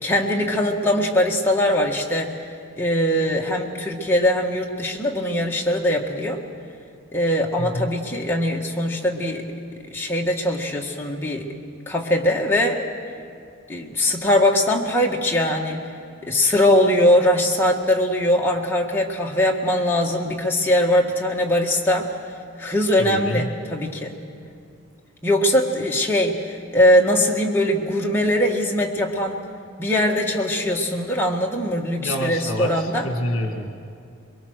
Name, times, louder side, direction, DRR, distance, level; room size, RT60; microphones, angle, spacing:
voice 1, 0.0-2.4 2.8-6.4 7.1-9.5 9.9-11.5 11.9-12.8 13.7-15.8 16.3-22.1 22.6-24.2 25.2-29.4 29.8-33.1, left 1 dB, 10° left, -1 dB, 1.6 m, -21 dB
voice 2, 7.6-7.9 23.0-23.5 32.0-33.7, equal, 60° left, 3 dB, 2.0 m, -27 dB
23.0 x 23.0 x 6.5 m, 2.4 s
head